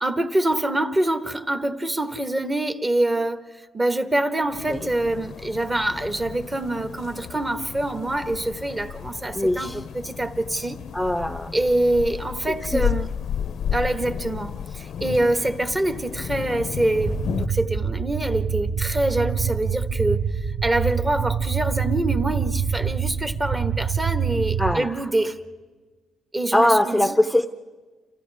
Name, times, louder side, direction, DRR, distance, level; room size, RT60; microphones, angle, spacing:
voice 1, 0.0-10.8 11.5-13.1 13.7-20.2 20.6-25.4 26.3-27.1, right 1 dB, 25° right, 1.5 m, -25 dB
sound 1, 4.5-17.5, left 8 dB, 65° left, 0.6 m, -33 dB
voice 2, 9.3-9.8 10.9-11.5 12.7-12.8 24.6-25.0 26.5-27.5, left 1 dB, ahead, 0.8 m, -21 dB
sound 2, 17.0-24.8, right 6 dB, 40° right, 1.0 m, -26 dB
29.0 x 28.0 x 3.6 m
cardioid pair, 90°, 0 cm